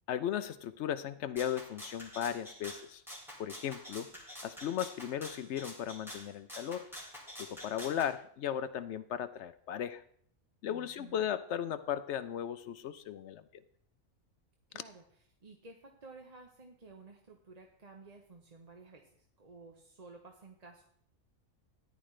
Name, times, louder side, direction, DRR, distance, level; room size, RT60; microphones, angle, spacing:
voice 1, 0.1-3.0 3.4-4.1 4.4-6.8 7.4-10.0 10.6-13.6, left 9 dB, 65° left, 13 dB, 0.8 m, -36 dB
Rattle (instrument), 1.4-8.1, equal, ahead, 3.0 m, -47 dB
voice 2, 10.6-11.3 14.7-20.8, right 3 dB, 35° right, 2 dB, 0.9 m, -54 dB
14.0 x 10.5 x 3.2 m, 0.64 s
omnidirectional pair, 1.4 m